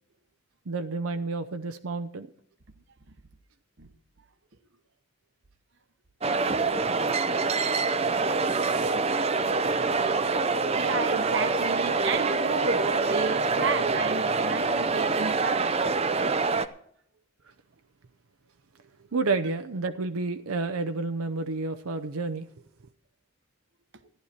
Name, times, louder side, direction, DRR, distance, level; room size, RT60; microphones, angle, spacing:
voice 1, 0.7-2.3 8.1-8.2 8.5-9.0 19.1-22.5, right 3 dB, 85° right, 0.7 m, -30 dB
sound 1, 6.2-16.7, right 4 dB, 30° right, 0.6 m, -25 dB
voice 2, 10.7-15.7, right 4 dB, 55° right, 1.0 m, -31 dB
14.5 x 11.0 x 4.4 m
head